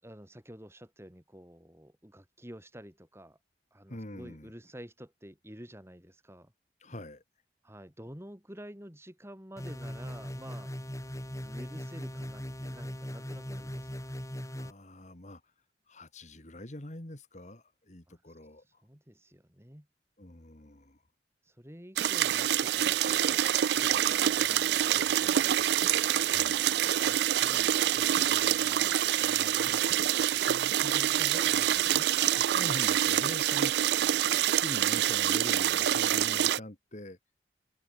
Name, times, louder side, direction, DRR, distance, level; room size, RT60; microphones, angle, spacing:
voice 1, 0.0-3.4 3.7-6.5 7.6-10.7 11.4-13.9 18.1-18.2 18.8-19.9 21.4-26.4 27.0-32.1, equal, 15° right, 7.2 m, -49 dB
voice 2, 3.9-4.5 6.8-7.2 14.5-15.4 15.9-18.8 20.2-21.0 26.1-26.7 29.4-30.1 32.3-37.2, left 1 dB, 40° left, 2.4 m, -44 dB
sound 1, 9.6-14.7, equal, 20° left, 3.3 m, -39 dB
sound 2, 22.0-36.6, right 11 dB, 70° right, 0.4 m, -26 dB
head